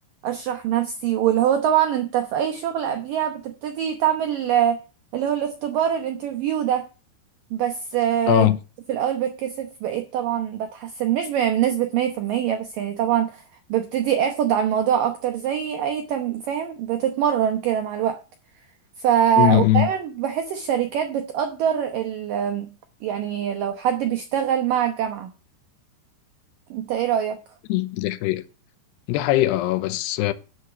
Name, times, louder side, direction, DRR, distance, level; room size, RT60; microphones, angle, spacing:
voice 1, 0.2-4.8 5.1-6.9 7.5-8.5 8.9-13.4 13.7-18.2 19.0-22.7 23.0-25.3 26.7-27.4, right 9 dB, 85° right, 1.9 m, -23 dB
voice 2, 8.3-8.6 19.4-19.9 27.7-28.4 29.1-30.3, left 14 dB, 80° left, 2.7 m, -20 dB
11.0 x 6.6 x 6.8 m
omnidirectional pair, 5.3 m